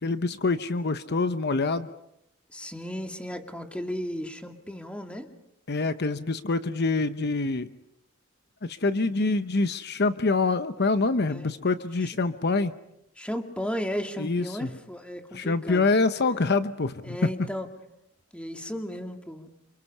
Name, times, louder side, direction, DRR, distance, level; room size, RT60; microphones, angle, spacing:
voice 1, 0.0-1.9 5.7-7.7 8.7-12.7 14.2-14.7 15.3-17.2, left 3 dB, 55° left, 11 dB, 0.9 m, -25 dB
voice 2, 2.5-5.3 11.3-11.5 12.0-12.1 13.2-16.0 17.0-17.7 18.3-19.5, equal, 5° left, 4 dB, 2.3 m, -35 dB
28.5 x 27.5 x 5.6 m, 0.82 s
head